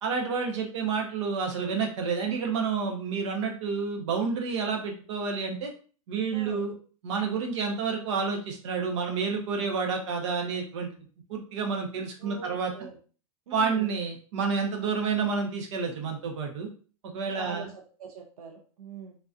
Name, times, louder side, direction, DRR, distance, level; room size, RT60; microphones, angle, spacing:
voice 1, 0.0-5.7 6.1-6.7 7.0-10.9 11.3-12.7 13.5-16.7 17.1-17.7, right 5 dB, 55° right, 2 dB, 1.0 m, -29 dB
voice 2, 6.3-6.7 12.2-13.0 13.5-13.9 17.4-19.2, right 6 dB, 85° right, 3 dB, 0.7 m, -43 dB
3.8 x 2.7 x 2.4 m, 0.40 s
supercardioid pair, 160°, 18 cm